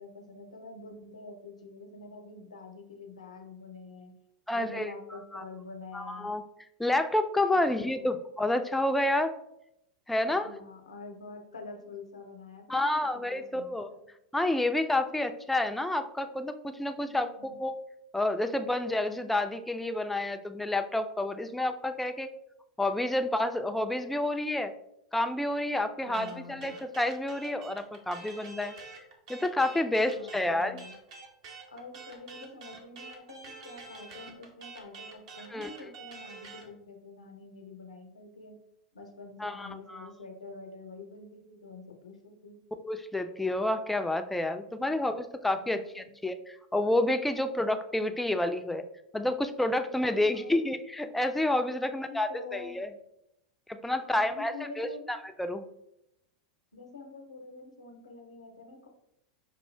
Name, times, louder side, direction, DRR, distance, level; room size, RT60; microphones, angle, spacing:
voice 1, 0.0-4.1 4.5-6.3 7.5-8.0 10.3-14.0 17.0-17.6 26.0-26.8 30.0-30.9 31.7-38.6 38.9-42.6 44.8-45.2 45.5-46.1 50.0-50.6 51.7-52.8 54.0-55.1 56.7-58.9, left 3 dB, 85° left, 4 dB, 0.7 m, -46 dB
voice 2, 4.5-4.9 5.3-5.4 5.9-6.4 6.8-9.3 10.1-10.6 12.7-13.9 14.3-17.7 18.1-22.3 22.8-24.7 25.1-28.8 29.3-30.8 35.5-35.7 39.4-40.1 42.8-48.8 49.1-52.9 53.7-55.7, left 1 dB, 5° left, 8 dB, 0.4 m, -29 dB
sound 1, 26.1-36.7, right 4 dB, 65° right, 1.0 m, -47 dB
5.5 x 2.4 x 3.2 m, 0.81 s
hypercardioid pair, 90°, 3 cm